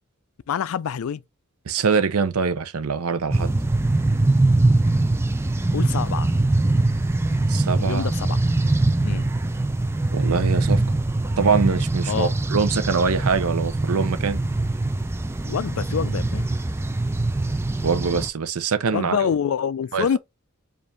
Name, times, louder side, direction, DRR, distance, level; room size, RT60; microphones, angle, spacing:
voice 1, 0.5-1.2 5.7-6.3 7.8-8.4 9.0-9.3 12.1-12.3 15.4-16.5 18.9-20.2, left 7 dB, 75° left, 0.4 m, -26 dB
voice 2, 1.7-3.6 7.5-8.1 10.1-10.8 11.4-14.4 17.8-19.3 19.9-20.1, right 5 dB, 90° right, 0.6 m, -23 dB
sound 1, 3.3-18.3, right 2 dB, 10° right, 0.3 m, -22 dB
5.0 x 2.5 x 3.2 m
head